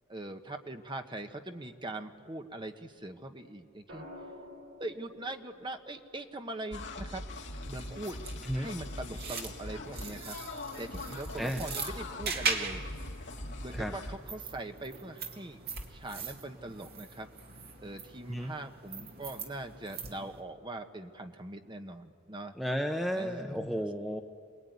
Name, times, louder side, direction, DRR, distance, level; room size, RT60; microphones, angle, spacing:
voice 1, 0.1-4.0 4.8-7.2 7.6-8.2 8.5-10.4 10.8-12.8 13.4-15.6 15.9-17.3 17.8-22.5 23.2-23.8, right 2 dB, 20° right, 6 dB, 1.3 m, -41 dB
sound 1, 3.9-8.0 9.7-10.1, left 1 dB, 65° right, 6.6 m, -52 dB
sound 2, 6.7-14.2, left 2 dB, 55° left, 2.2 m, -41 dB
sound 3, 7.8-20.4, right 4 dB, 50° right, 2.3 m, -41 dB
voice 2, 22.5-24.2, equal, ahead, 4 dB, 0.8 m, -33 dB
28.5 x 21.0 x 9.5 m, 2.2 s
head